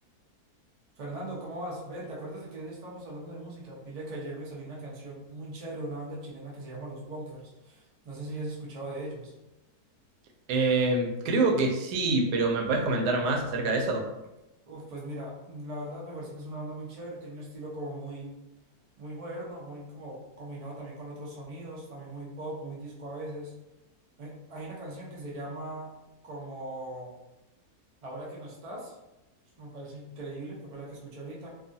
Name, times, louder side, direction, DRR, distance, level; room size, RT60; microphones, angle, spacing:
voice 1, 1.0-9.3 14.7-18.3 19.0-23.5 24.2-25.9 26.2-27.2 28.0-28.9 29.6-31.5, right 1 dB, 60° right, -4 dB, 0.3 m, -39 dB
voice 2, 10.5-14.0, right 3 dB, 85° right, 2 dB, 1.1 m, -26 dB
2.6 x 2.3 x 2.6 m, 0.98 s
omnidirectional pair, 1.7 m